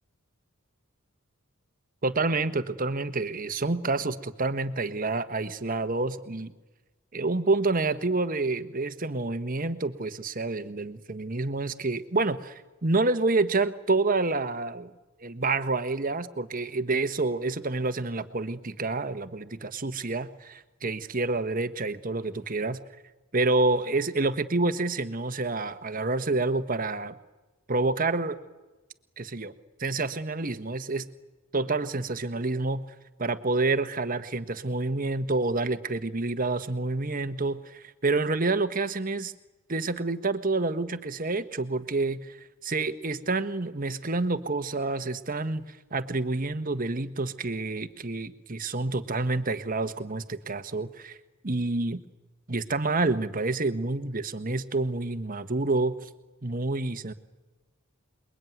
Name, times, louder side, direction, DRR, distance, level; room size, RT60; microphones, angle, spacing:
voice 1, 2.0-6.5 7.1-14.9 15.2-22.8 23.3-27.1 27.7-28.4 29.2-29.5 29.8-31.1 31.5-32.8 33.2-39.3 39.7-51.2 51.4-52.0 52.5-56.1 56.4-57.1, right 3 dB, 40° right, 11 dB, 1.3 m, -28 dB
28.0 x 22.0 x 9.4 m, 1.1 s
head